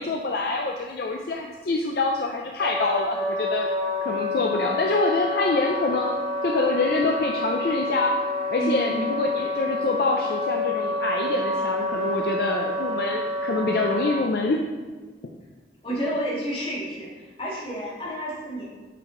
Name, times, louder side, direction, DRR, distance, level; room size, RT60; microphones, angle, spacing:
voice 1, 0.0-3.7 4.0-6.2 6.4-8.1 8.5-14.6, left 3 dB, 60° left, 1 dB, 0.5 m, -26 dB
Wind instrument woodwind instrument, 2.6-14.2, left 2 dB, 35° right, 1.3 m, -28 dB
voice 2, 8.6-9.1 15.8-17.1 17.4-18.6, right 1 dB, 30° left, -6 dB, 1.9 m, -30 dB
7.6 x 4.9 x 3.8 m, 1.4 s
head